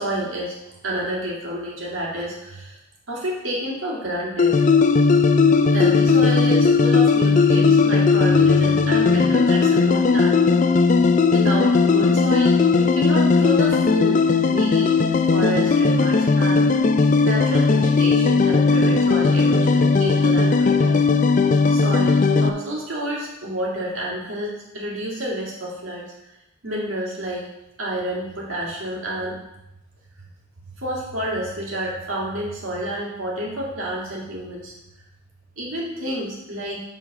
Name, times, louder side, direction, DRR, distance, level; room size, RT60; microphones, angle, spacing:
voice 1, 0.0-2.8 3.1-4.6 5.7-10.6 11.3-14.2 14.4-15.0 15.3-16.8 17.2-21.0 21.4-26.1 26.6-27.5 27.8-29.4 30.8-34.7 35.6-36.8, right 1 dB, 80° right, -4 dB, 2.1 m, -29 dB
sound 1, 4.4-22.5, left 4 dB, 40° left, 0.4 m, -17 dB
8.2 x 3.8 x 5.9 m, 0.89 s
head